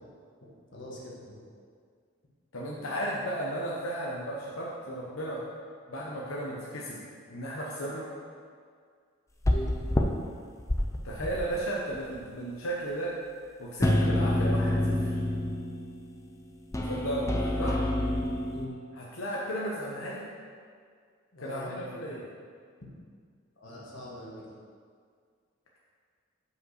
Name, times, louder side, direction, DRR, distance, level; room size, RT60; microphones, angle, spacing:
voice 1, 0.7-1.4 9.5-9.7 18.5-18.8 21.3-21.9 23.6-24.5, left 1 dB, 60° left, -4 dB, 1.5 m, -42 dB
voice 2, 2.5-5.4 5.9-7.0 7.3-8.1 11.0-13.2 13.6-15.2 16.8-17.8 18.9-20.3 21.4-22.2, right 1 dB, 90° left, -4 dB, 0.9 m, -34 dB
sound 1, 9.5-10.0 10.6-11.6 11.9-12.0 13.8-16.0 16.7-18.7, left 1 dB, 15° left, 0.4 m, -27 dB
5.2 x 5.1 x 6.5 m, 2.1 s
head